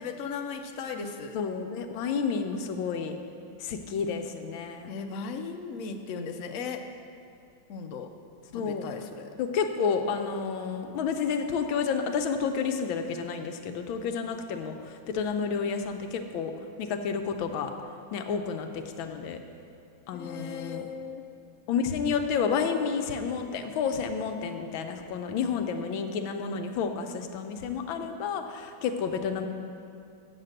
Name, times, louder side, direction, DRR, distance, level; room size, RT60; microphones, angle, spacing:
voice 1, 0.0-1.4 4.9-6.8 7.7-8.1 8.5-9.3 20.1-21.2 29.3-29.4, left 5 dB, 65° left, 5 dB, 0.8 m, -37 dB
voice 2, 1.3-3.1 3.6-4.9 8.5-8.8 9.4-16.5 16.8-17.7 18.1-19.4 20.1-20.9 21.7-29.5, left 6 dB, 90° left, 6 dB, 1.5 m, -30 dB
8.1 x 6.7 x 7.7 m, 2.5 s
omnidirectional pair, 2.2 m